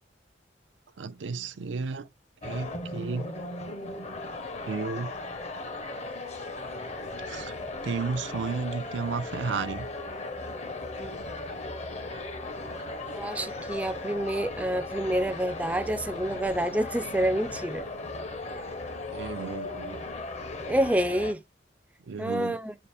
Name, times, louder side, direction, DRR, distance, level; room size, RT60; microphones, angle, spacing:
voice 1, 1.0-2.1 2.4-3.3 4.7-5.1 7.2-7.6 7.8-9.9 19.1-20.0 22.1-22.6, right 4 dB, 85° right, 0.5 m, -33 dB
sound 1, 2.4-21.3, left 2 dB, 40° left, 0.6 m, -37 dB
voice 2, 13.0-17.8 20.7-21.4 22.2-22.8, right 1 dB, 10° right, 0.3 m, -28 dB
5.5 x 2.4 x 3.3 m
head